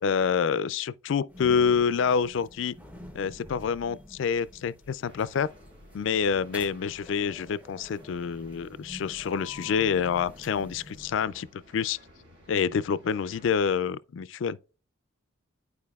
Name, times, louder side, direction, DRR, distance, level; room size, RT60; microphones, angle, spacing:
voice 1, 0.0-2.7 3.1-5.5 5.9-12.0 12.5-14.6, left 6 dB, 65° left, 0.3 m, -27 dB
sound 1, 1.3-11.5, left 1 dB, 5° right, 0.8 m, -48 dB
sound 2, 5.0-13.8, equal, 60° right, 2.4 m, -55 dB
10.5 x 4.7 x 2.3 m
head